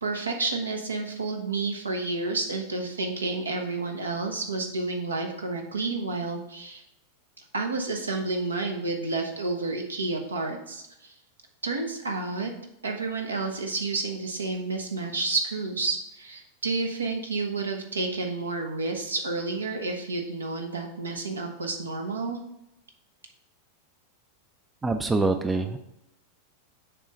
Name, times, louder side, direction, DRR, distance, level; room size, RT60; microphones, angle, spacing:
voice 1, 0.0-6.8 7.5-11.1 11.6-12.5 12.8-22.4, right 3 dB, 75° right, 3 dB, 0.9 m, -30 dB
voice 2, 24.8-25.8, right 3 dB, 10° right, 8 dB, 0.4 m, -25 dB
6.7 x 3.1 x 5.0 m, 0.83 s
figure-of-eight pair, 90°, 0 cm